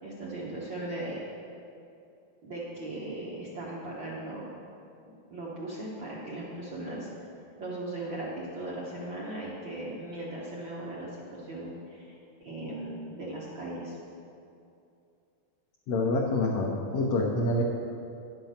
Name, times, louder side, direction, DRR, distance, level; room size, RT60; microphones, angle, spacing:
voice 1, 0.0-1.2 2.4-4.5 5.3-7.1 7.6-12.1 12.4-14.0, right 1 dB, 60° right, -7 dB, 1.3 m, -38 dB
voice 2, 15.9-17.6, left 2 dB, 90° left, -1 dB, 1.3 m, -27 dB
10.5 x 5.9 x 6.6 m, 2.6 s
omnidirectional pair, 3.9 m